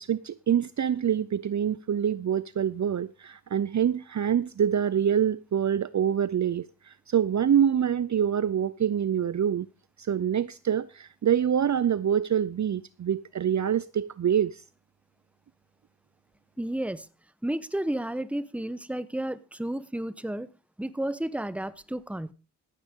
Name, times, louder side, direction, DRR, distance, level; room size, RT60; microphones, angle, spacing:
voice 1, 0.0-9.7 10.0-14.6, right 9 dB, 45° right, 0.6 m, -26 dB
voice 2, 16.6-17.1 17.4-20.5 20.8-22.3, right 1 dB, 5° right, 1.0 m, -32 dB
15.5 x 9.1 x 3.7 m
supercardioid pair, 40°, 40 cm